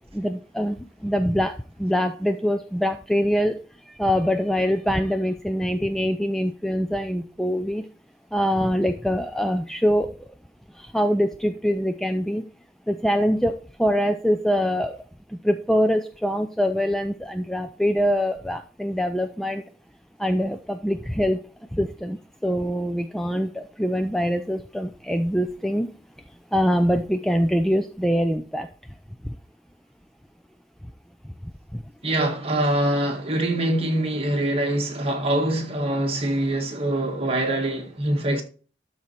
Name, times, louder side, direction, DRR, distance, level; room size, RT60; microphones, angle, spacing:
voice 1, 0.1-3.6 3.9-7.8 8.3-10.1 10.8-12.4 12.9-15.0 15.4-19.6 20.2-21.4 21.7-25.9 26.5-28.7 29.2-29.3 31.7-31.8, equal, ahead, 0.4 m, -24 dB
voice 2, 32.0-38.4, right 1 dB, 30° right, 1.7 m, -24 dB
12.5 x 4.2 x 4.5 m
head